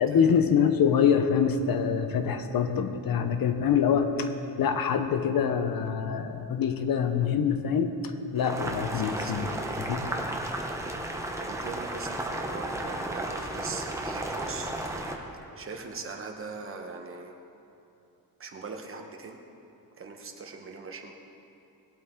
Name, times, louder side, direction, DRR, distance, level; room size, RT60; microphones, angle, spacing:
voice 1, 0.0-4.3 4.6-9.5 9.9-10.0, left 7 dB, 65° left, 7 dB, 0.9 m, -25 dB
Boiling, 8.4-15.1, right 1 dB, 10° right, 0.9 m, -33 dB
voice 2, 8.8-9.7 11.4-14.7 15.5-17.3 18.4-19.4 20.0-21.1, right 4 dB, 35° right, 3 dB, 1.1 m, -41 dB
20.0 x 8.4 x 3.8 m, 2.8 s
wide cardioid pair, 165°, 38 cm